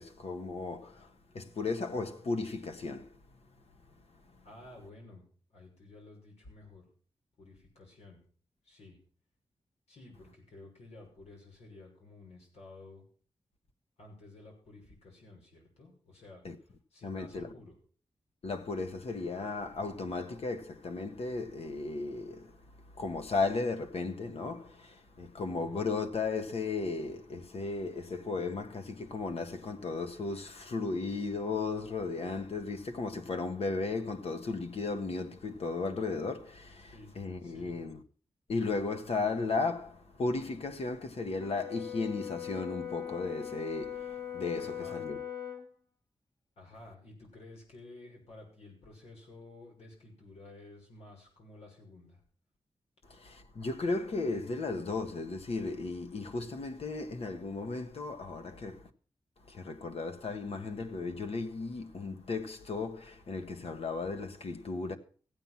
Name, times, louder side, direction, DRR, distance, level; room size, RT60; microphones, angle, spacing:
voice 1, 0.0-3.1 16.4-16.5 17.0-17.5 18.4-22.6 22.9-38.0 38.5-45.2 53.1-58.9 59.5-65.0, left 3 dB, 70° left, 1.4 m, -35 dB
voice 2, 4.4-6.9 7.4-8.2 8.6-9.0 9.9-13.0 14.0-17.8 25.5-25.8 36.9-37.1 37.4-37.7 44.6-45.1 46.6-52.2, left 2 dB, 85° left, 6.1 m, -53 dB
Brass instrument, 41.4-45.7, left 9 dB, 35° left, 1.7 m, -40 dB
15.0 x 9.1 x 5.8 m
cardioid pair, 60°, 11 cm